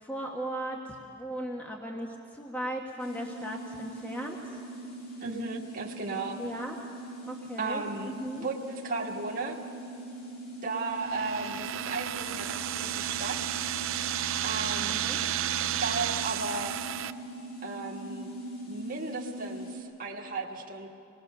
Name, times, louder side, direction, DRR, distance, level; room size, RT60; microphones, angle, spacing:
voice 1, 0.0-4.4 6.4-6.8 7.3-8.5 14.8-15.2, right 1 dB, 10° left, -1 dB, 1.3 m, -37 dB
sound 1, 3.0-19.8, right 1 dB, 50° left, 5.0 m, -42 dB
voice 2, 5.2-6.4 7.6-9.6 10.6-13.6 14.4-14.9 15.6-16.8 17.6-18.3 18.7-20.9, right 3 dB, 45° right, -1 dB, 1.8 m, -35 dB
sound 2, 11.0-17.1, right 11 dB, 75° right, 0.5 m, -32 dB
25.5 x 20.5 x 6.7 m, 2.8 s
head